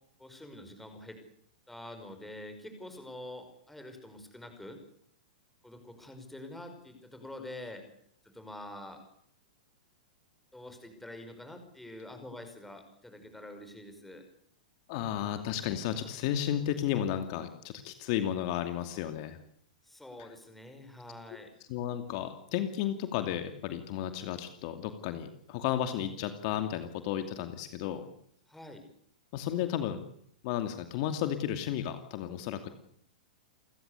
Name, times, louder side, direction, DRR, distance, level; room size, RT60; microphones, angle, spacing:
voice 1, 0.2-1.2 1.7-4.8 5.6-7.8 8.2-9.0 10.5-14.3 19.8-21.5 28.5-28.8, left 1 dB, 5° left, 6 dB, 5.4 m, -46 dB
voice 2, 14.9-19.4 21.7-28.0 29.3-30.1 30.4-32.7, left 10 dB, 50° left, 8 dB, 2.6 m, -33 dB
29.0 x 16.0 x 8.3 m, 0.67 s
hypercardioid pair, 140°, 4 cm